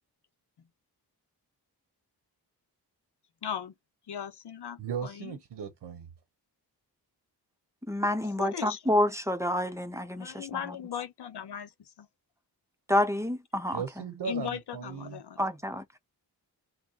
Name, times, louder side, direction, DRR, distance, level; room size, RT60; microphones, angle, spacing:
voice 1, 3.4-3.7 4.1-5.4 8.2-8.8 10.2-11.7 12.0-12.1 14.2-15.5, left 9 dB, 75° left, 1.1 m, -38 dB
voice 2, 4.8-6.1 13.7-15.2, right 6 dB, 85° right, 1.1 m, -37 dB
voice 3, 7.9-10.7 12.9-13.8 15.4-15.8, left 1 dB, 5° right, 0.7 m, -28 dB
5.8 x 2.2 x 4.2 m
wide cardioid pair, 120°, 40 cm